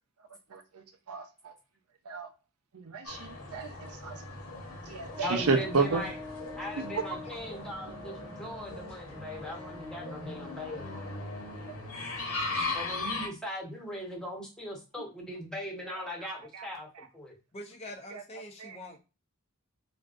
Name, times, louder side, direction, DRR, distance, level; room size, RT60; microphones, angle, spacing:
voice 1, 0.5-1.5 2.1-2.3 2.7-4.2 4.9-6.1 6.8-7.0 11.7-11.8 16.2-16.7 18.1-18.2 18.6-18.8, right 4 dB, 80° right, 0.6 m, -32 dB
sound 1, 3.1-13.3, left 3 dB, 75° left, 1.1 m, -39 dB
Brass instrument, 5.1-11.8, left 3 dB, 30° right, 0.8 m, -46 dB
voice 2, 5.2-6.2 6.5-11.0 12.7-17.4, left 1 dB, 5° left, 0.9 m, -39 dB
voice 3, 17.5-19.0, left 1 dB, 30° left, 0.5 m, -44 dB
3.2 x 2.6 x 2.5 m
head